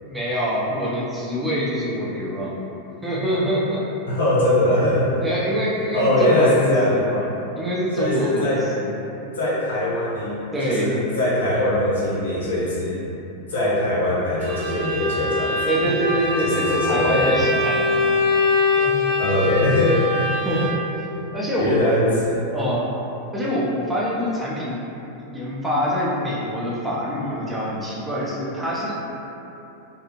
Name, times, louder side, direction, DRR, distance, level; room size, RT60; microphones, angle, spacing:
voice 1, 0.0-2.6 3.0-3.8 5.2-7.3 7.6-9.0 10.5-11.0 15.7-18.1 18.8-19.1 20.4-21.1 21.3-21.8 22.5-22.9 23.3-24.8 25.2-29.0, equal, 10° right, -7 dB, 0.5 m, -25 dB
voice 2, 4.1-5.2 5.9-7.0 8.0-8.6 9.4-10.4 10.6-13.0 13.5-15.6 16.4-17.5 19.2-20.1 21.6-22.5, left 1 dB, 65° left, -8 dB, 0.8 m, -21 dB
Bowed string instrument, 14.4-21.0, left 3 dB, 40° right, 0.9 m, -23 dB
2.7 x 2.4 x 2.8 m, 2.9 s
figure-of-eight pair, 90°, 0 cm